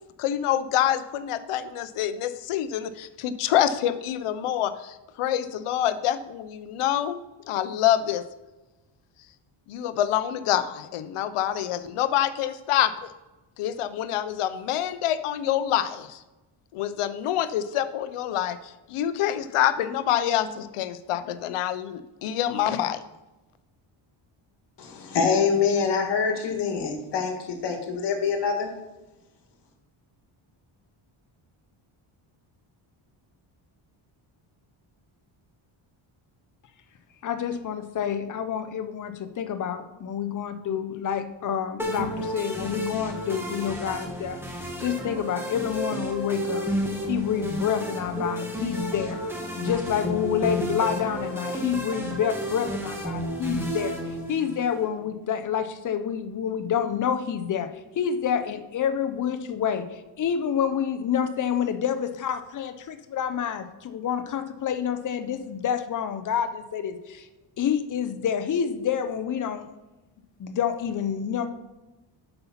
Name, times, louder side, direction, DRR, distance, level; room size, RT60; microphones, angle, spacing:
voice 1, 0.2-7.2 7.5-8.2 9.7-12.9 13.6-16.2 16.7-18.6 18.9-23.0, left 11 dB, 90° left, 12 dB, 0.8 m, -26 dB
voice 2, 24.8-28.7, left 5 dB, 55° left, 4 dB, 1.6 m, -25 dB
voice 3, 37.2-46.7 47.1-49.2 49.6-54.0 54.3-67.3 67.6-69.7 70.4-71.5, left 8 dB, 40° left, 9 dB, 0.6 m, -28 dB
sound 1, 41.8-54.8, right 1 dB, 5° right, 1.2 m, -32 dB
8.0 x 5.6 x 5.7 m, 1.1 s
wide cardioid pair, 180°, 49 cm